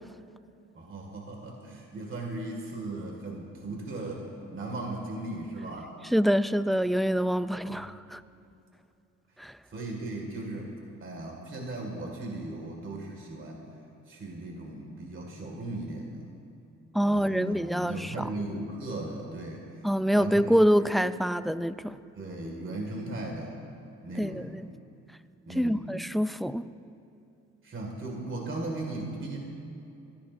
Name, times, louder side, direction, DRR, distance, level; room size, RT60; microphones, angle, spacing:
voice 1, 0.7-4.3 4.5-5.9 7.7-7.9 9.7-10.7 11.0-13.7 14.1-16.3 17.0-19.9 20.1-21.0 22.2-23.6 24.0-24.5 25.5-25.9 27.6-29.4, right 2 dB, 40° right, 0 dB, 2.0 m, -37 dB
voice 2, 6.1-8.2 9.4-9.5 16.9-18.3 19.8-22.0 24.2-24.6 25.6-26.6, equal, ahead, 14 dB, 0.3 m, -26 dB
24.0 x 14.0 x 2.6 m, 2.7 s
cardioid pair, 90°, 30 cm